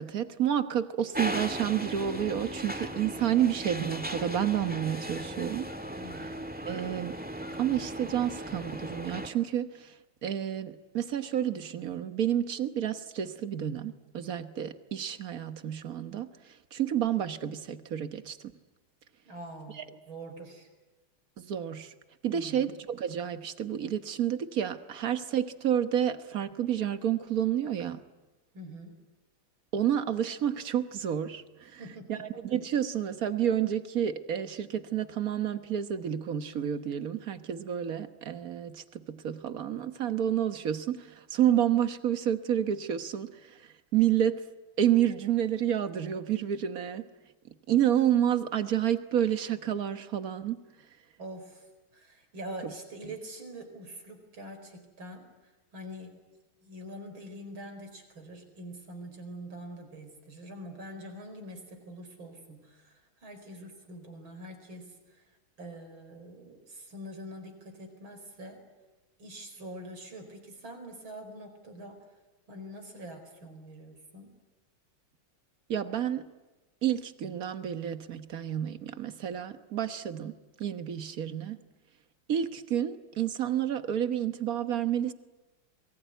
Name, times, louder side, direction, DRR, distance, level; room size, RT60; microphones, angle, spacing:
voice 1, 0.0-5.7 6.2-6.3 6.6-7.2 7.6-10.0 10.2-18.5 19.7-19.8 21.4-21.9 22.2-28.0 29.7-31.8 32.1-44.5 44.8-47.0 47.7-50.6 52.6-52.7 75.7-76.2 76.8-81.6 82.3-85.1, right 10 dB, 50° right, 10 dB, 1.4 m, -30 dB
sound 1, 1.1-9.3, right 1 dB, 5° right, 1.7 m, -37 dB
voice 2, 6.0-6.4 19.3-20.7 22.3-22.7 28.5-28.9 31.8-32.3 51.2-51.7 51.9-55.3 55.7-56.1 56.6-65.2 65.6-68.6 69.2-72.0 72.5-74.3, right 1 dB, 70° right, 6 dB, 5.4 m, -44 dB
28.0 x 22.5 x 9.3 m, 1.1 s
omnidirectional pair, 2.2 m